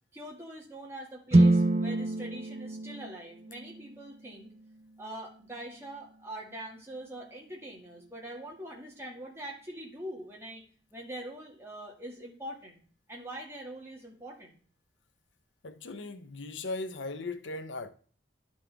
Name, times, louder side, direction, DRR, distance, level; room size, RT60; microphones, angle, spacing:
voice 1, 0.1-4.5 5.0-10.6 10.9-12.8 13.1-14.6, right 1 dB, 15° right, 2.0 m, -43 dB
sound 1, 1.3-5.4, right 2 dB, 35° right, 0.5 m, -27 dB
voice 2, 15.6-17.9, left 3 dB, 90° left, 0.7 m, -38 dB
11.5 x 5.4 x 3.4 m
head